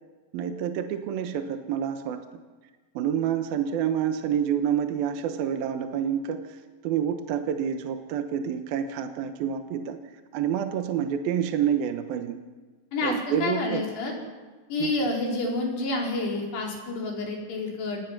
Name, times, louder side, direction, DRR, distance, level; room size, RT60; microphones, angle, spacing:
voice 1, 0.3-2.4 3.0-6.6 6.8-10.0 10.3-12.4 13.0-13.8 14.8-15.0, right 9 dB, 70° right, 7 dB, 2.8 m, -28 dB
voice 2, 12.9-14.1 14.7-18.0, left 2 dB, 85° left, -1 dB, 6.6 m, -29 dB
28.5 x 19.5 x 6.0 m, 1.3 s
omnidirectional pair, 4.7 m